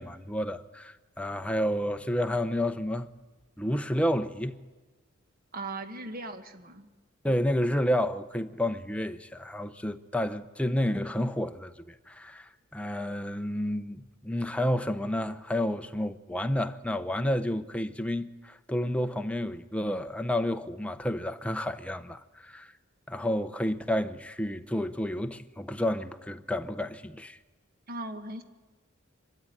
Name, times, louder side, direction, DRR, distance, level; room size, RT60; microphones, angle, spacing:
voice 1, 0.0-3.1 3.6-4.6 7.2-22.7 23.1-27.4, left 1 dB, 5° left, 0.8 m, -30 dB
voice 2, 5.5-6.9 27.9-28.4, right 2 dB, 45° right, 1.4 m, -38 dB
24.5 x 13.0 x 9.9 m
head